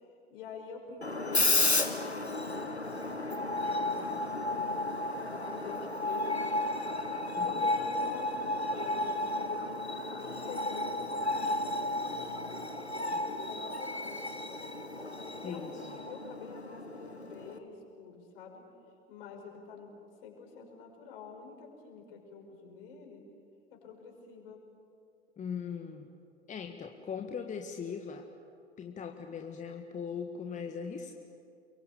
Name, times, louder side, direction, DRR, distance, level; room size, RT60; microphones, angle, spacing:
voice 1, 0.3-1.5 1.8-4.8 5.3-6.5 7.3-12.1 13.4-14.2 15.2-18.6 19.1-19.9 20.2-23.2 23.7-24.6, left 5 dB, 60° left, 2 dB, 6.1 m, -47 dB
Screech, 1.0-17.6, left 2 dB, 90° left, 1.4 m, -33 dB
voice 2, 15.4-15.9 25.4-26.1 26.5-28.3 28.8-31.2, left 6 dB, 25° left, 4 dB, 1.6 m, -40 dB
28.5 x 23.5 x 8.5 m, 2.6 s
figure-of-eight pair, 80°, 32 cm